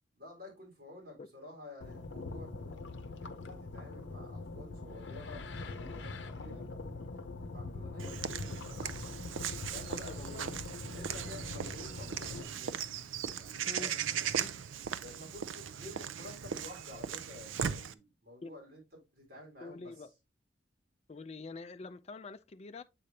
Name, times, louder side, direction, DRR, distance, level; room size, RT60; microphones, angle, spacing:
voice 1, 0.1-2.8 3.1-6.7 7.1-9.0 9.7-10.5 10.9-12.9 13.3-14.0 15.0-19.9, left 2 dB, 50° right, 3.6 m, -51 dB
sound 1, 1.8-12.4, left 3 dB, 65° left, 0.8 m, -43 dB
Walk footsteps / Bird vocalization bird call bird song, 8.0-17.9, right 8 dB, 90° right, 0.5 m, -38 dB
voice 2, 9.9-10.6 13.7-13.9 14.3-14.5 18.4-18.5 19.6-20.1 21.1-22.8, left 3 dB, 35° left, 0.4 m, -46 dB
7.7 x 4.9 x 2.8 m
head